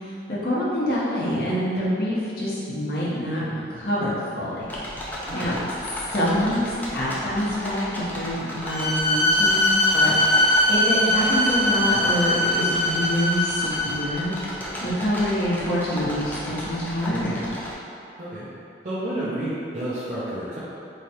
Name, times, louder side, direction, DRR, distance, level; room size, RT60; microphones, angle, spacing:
voice 1, 0.4-4.1 4.4-4.7 5.3-5.6 6.1-14.3 14.8-17.5, equal, 55° left, -9 dB, 1.0 m, -26 dB
sound 1, 4.6-17.7, equal, 10° left, 0.4 m, -35 dB
voice 2, 5.2-5.7 18.2-18.5 18.8-20.6, right 1 dB, 40° right, -11 dB, 0.6 m, -30 dB
Bowed string instrument, 8.6-14.1, left 1 dB, 30° left, 1.0 m, -21 dB
3.3 x 2.3 x 4.2 m, 2.7 s
head